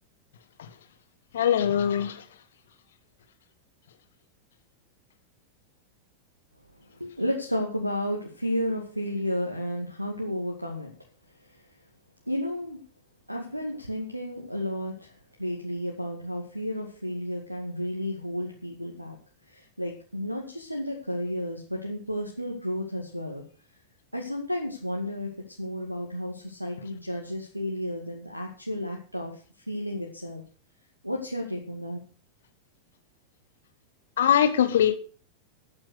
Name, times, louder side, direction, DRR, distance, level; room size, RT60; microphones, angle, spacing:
voice 1, 1.3-2.2 34.2-34.9, left 9 dB, 60° left, 10 dB, 1.7 m, -22 dB
voice 2, 6.9-10.9 11.5-11.6 12.3-12.8 13.3-15.1 15.4-19.2 19.5-23.4 24.1-25.3 25.6-30.4 31.0-32.0, equal, 90° right, 2 dB, 2.1 m, -32 dB
13.0 x 8.8 x 6.5 m, 0.40 s
figure-of-eight pair, 90°, 0 cm